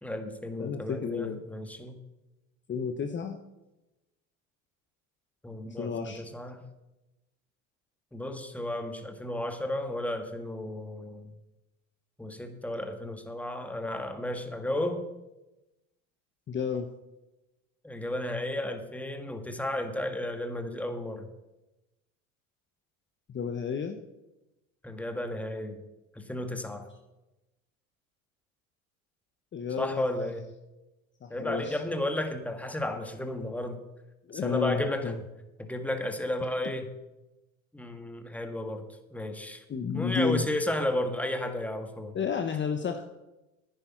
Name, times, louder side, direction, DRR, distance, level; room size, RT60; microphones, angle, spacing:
voice 1, 0.0-1.9 5.4-6.6 8.1-11.3 12.2-15.0 17.8-21.3 24.8-25.8 26.1-26.9 29.7-30.5 31.3-33.8 34.3-35.2 35.7-36.9 37.7-39.6 39.9-42.2 42.5-42.6, left 1 dB, 5° left, 5 dB, 1.7 m, -33 dB
voice 2, 0.6-1.4 2.7-3.4 5.8-6.2 16.5-16.9 23.3-24.0 29.5-30.0 31.2-31.8 34.3-35.2 39.7-40.4 42.1-43.1, left 6 dB, 30° left, 6 dB, 1.1 m, -31 dB
10.5 x 9.8 x 5.9 m, 1.0 s
hypercardioid pair, 90°, 40 cm